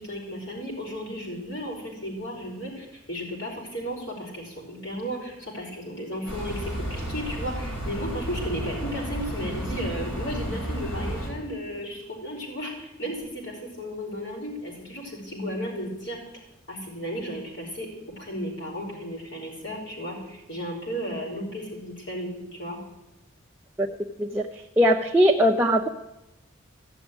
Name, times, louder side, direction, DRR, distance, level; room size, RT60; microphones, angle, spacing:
voice 1, 0.0-16.2 16.7-17.9 18.2-22.8, equal, 60° left, -1 dB, 5.3 m, -34 dB
sound 1, 6.3-11.3, equal, 85° left, 5.5 m, -32 dB
voice 2, 24.8-25.9, equal, 10° right, 0 dB, 0.6 m, -20 dB
15.5 x 7.2 x 9.4 m, 0.92 s
head